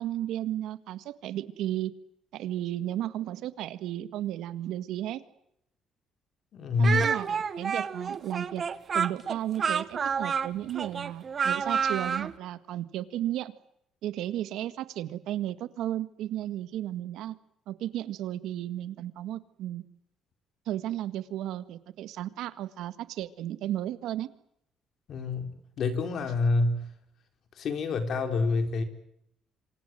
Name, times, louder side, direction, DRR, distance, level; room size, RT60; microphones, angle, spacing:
voice 1, 0.0-1.9 2.3-5.2 6.8-8.6 8.9-13.5 14.0-17.3 17.7-19.8 20.6-24.3, right 12 dB, 85° right, 12 dB, 1.7 m, -34 dB
voice 2, 6.5-7.0 25.1-25.5 25.8-26.9 27.6-28.8, left 3 dB, 60° left, 7 dB, 4.5 m, -27 dB
Speech, 6.8-12.3, right 6 dB, 40° right, 1.4 m, -29 dB
27.0 x 24.5 x 7.9 m, 0.77 s
cardioid pair, 120°, 0 cm